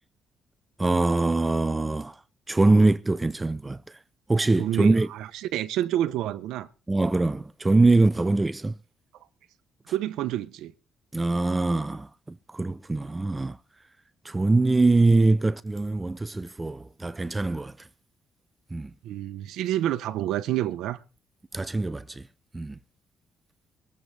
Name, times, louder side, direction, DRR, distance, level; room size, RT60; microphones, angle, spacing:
voice 1, 0.8-2.1 2.5-3.8 4.3-5.1 6.9-8.7 11.1-13.6 14.2-17.7 18.7-18.9 21.5-22.2 22.5-22.8, right 2 dB, 20° right, 0.6 m, -23 dB
voice 2, 4.6-6.7 9.9-10.7 19.0-21.0, right 12 dB, 90° right, 0.9 m, -28 dB
23.5 x 7.9 x 3.4 m
cardioid pair, 90°, 0 cm